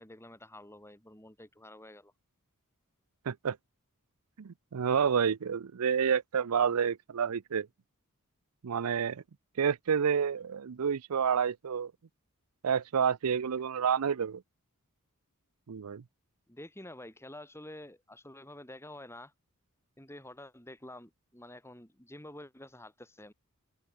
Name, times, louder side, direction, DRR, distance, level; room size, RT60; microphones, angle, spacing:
voice 1, 0.0-2.1 16.5-19.3 20.0-23.3, left 1 dB, 10° left, 4.6 m, -49 dB
voice 2, 3.3-3.6 4.4-7.7 8.6-9.2 9.6-11.9 12.6-14.4 15.7-16.0, right 7 dB, 80° right, 0.5 m, -29 dB
open air
head